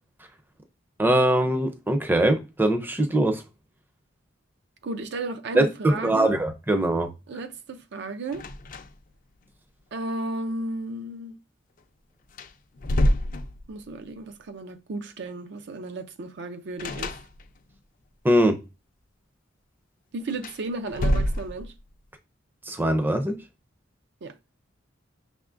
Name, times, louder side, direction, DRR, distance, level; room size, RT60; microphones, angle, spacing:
voice 1, 1.0-3.4 5.6-7.1 18.2-18.6 22.7-23.4, right 1 dB, 10° right, 0.5 m, -22 dB
voice 2, 4.8-6.4 7.3-8.5 9.9-11.4 13.7-17.2 20.1-21.7 24.2-24.4, right 2 dB, 65° right, 0.5 m, -34 dB
sound 1, 8.3-9.2 9.4-9.5 11.8-11.9 12.3-14.0 16.8-17.8 20.3-21.9, equal, 45° left, 0.4 m, -27 dB
6.0 x 3.5 x 2.5 m
head